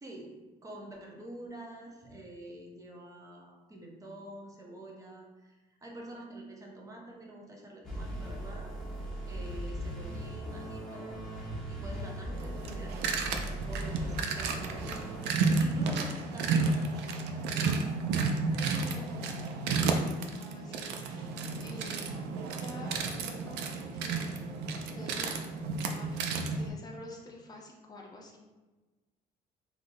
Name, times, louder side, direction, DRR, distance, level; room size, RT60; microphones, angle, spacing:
voice 1, 0.0-11.3 11.7-14.8 15.6-17.9 18.5-19.2, right 1 dB, 20° right, -1 dB, 0.6 m, -47 dB
sound 1, 7.8-15.3, right 1 dB, 5° left, 1.1 m, -39 dB
sound 2, 12.4-26.7, right 4 dB, 80° right, 0.4 m, -32 dB
voice 2, 20.3-22.1 22.6-24.5 24.8-26.2 26.5-28.4, left 1 dB, 25° left, -2 dB, 0.7 m, -48 dB
3.5 x 2.4 x 2.6 m, 1.2 s
cardioid pair, 110°, 17 cm